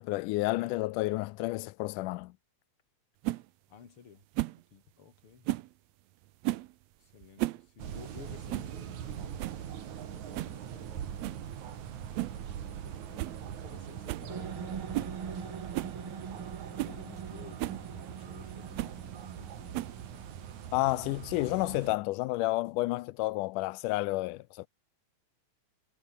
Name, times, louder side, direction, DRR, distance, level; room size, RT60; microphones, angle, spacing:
voice 1, 0.0-2.3 20.7-24.7, left 20 dB, 80° left, 2.1 m, -30 dB
sound 1, 3.2-3.4 4.3-4.6 5.4-5.7 6.4-6.7 7.2-7.6 7.9-8.0 8.5-8.7 9.1-9.2 9.4-9.7 10.3-10.6 11.2-11.4 12.2-12.4 12.7-12.8 13.2-13.4 13.7-13.8 14.1-14.3 14.9-15.2 15.7-16.0 16.4-16.5 16.8-17.0 17.6-17.8 18.8-19.0 19.7-20.1, right 17 dB, 85° right, 1.5 m, -34 dB
voice 2, 3.7-4.3 4.7-5.5 7.0-9.6 10.1-11.4 12.3-15.7 16.8-20.3, left 7 dB, 45° left, 2.9 m, -54 dB
sound 2, 7.8-22.0, right 9 dB, 65° right, 3.2 m, -42 dB
sound 3, 14.3-21.6, right 6 dB, 45° right, 2.9 m, -44 dB
omnidirectional pair, 3.7 m